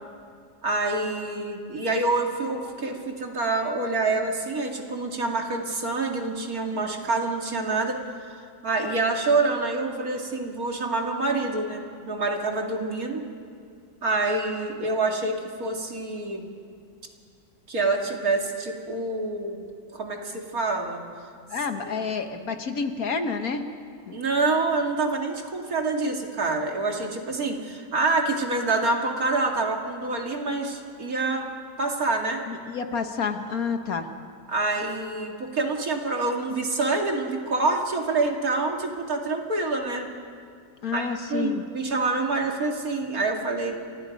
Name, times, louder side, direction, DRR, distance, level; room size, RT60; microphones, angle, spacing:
voice 1, 0.6-8.0 8.6-13.2 14.0-16.5 17.7-19.6 19.9-21.0 21.8-22.1 24.1-31.5 31.8-32.4 34.5-40.1 40.9-43.9, right 3 dB, 55° right, 2 dB, 2.7 m, -26 dB
voice 2, 21.5-23.7 24.1-24.2 32.5-34.1 40.8-41.6, left 5 dB, 60° left, 7 dB, 1.7 m, -29 dB
29.0 x 26.0 x 5.3 m, 2.4 s
omnidirectional pair, 1.8 m